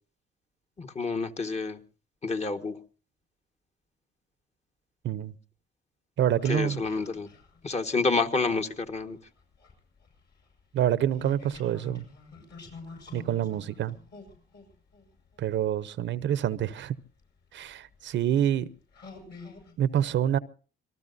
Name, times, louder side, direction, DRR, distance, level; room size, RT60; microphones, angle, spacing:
voice 1, 0.8-1.8 2.2-2.8 6.5-7.3 7.6-9.2, left 4 dB, 35° left, 1.4 m, -28 dB
voice 2, 6.2-6.8 10.7-12.1 13.1-14.0 15.4-16.9 17.5-18.7 19.8-20.4, right 10 dB, 70° right, 0.8 m, -27 dB
sound 1, 6.3-9.0 9.4-16.1 17.0-17.1 17.7-18.0 18.5-18.6 18.9-19.7, left 3 dB, 60° left, 7.3 m, -48 dB
26.0 x 19.5 x 2.6 m
cardioid pair, 90°, 20 cm